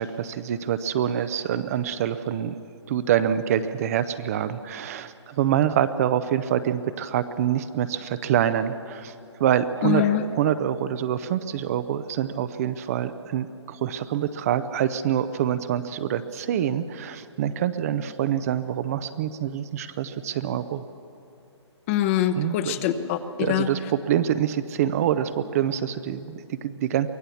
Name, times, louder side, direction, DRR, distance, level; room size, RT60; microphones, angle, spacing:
voice 1, 0.0-2.6 2.9-9.1 9.4-10.0 10.4-20.8 22.4-22.8 23.4-27.1, right 10 dB, 30° right, 12 dB, 0.6 m, -26 dB
voice 2, 9.8-10.3 21.9-23.7, left 10 dB, 30° left, 10 dB, 0.9 m, -24 dB
24.0 x 17.0 x 7.1 m, 2.7 s
hypercardioid pair, 155°, 15 cm